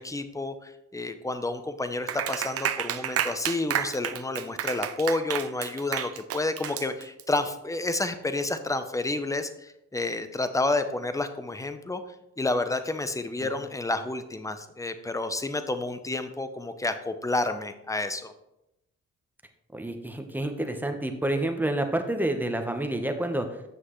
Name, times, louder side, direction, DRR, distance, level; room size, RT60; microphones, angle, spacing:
voice 1, 0.0-12.0 12.4-18.3, left 2 dB, 10° left, 10 dB, 0.7 m, -30 dB
Clapping, 2.1-7.4, right 10 dB, 55° right, 0.5 m, -31 dB
voice 2, 19.7-23.6, right 1 dB, 5° right, 5 dB, 1.0 m, -29 dB
7.8 x 6.2 x 3.1 m, 0.87 s
cardioid pair, 70°, 29 cm